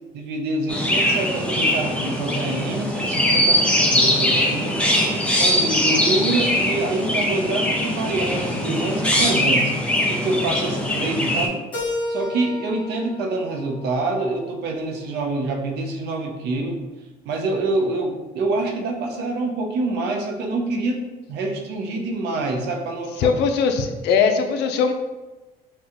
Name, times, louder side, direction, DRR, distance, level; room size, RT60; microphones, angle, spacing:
voice 1, 0.1-4.9 5.3-9.7 10.1-11.6 12.1-16.8 17.2-23.3, right 2 dB, 80° right, 3 dB, 0.7 m, -26 dB
Chirp tweet, 0.7-11.5, left 1 dB, 5° left, 0.7 m, -21 dB
Keyboard (musical), 11.7-14.6, left 2 dB, 25° left, 1.4 m, -32 dB
voice 2, 23.2-24.9, left 5 dB, 85° left, 6 dB, 0.5 m, -20 dB
5.8 x 2.3 x 3.0 m, 1.1 s
cardioid pair, 110°, 17 cm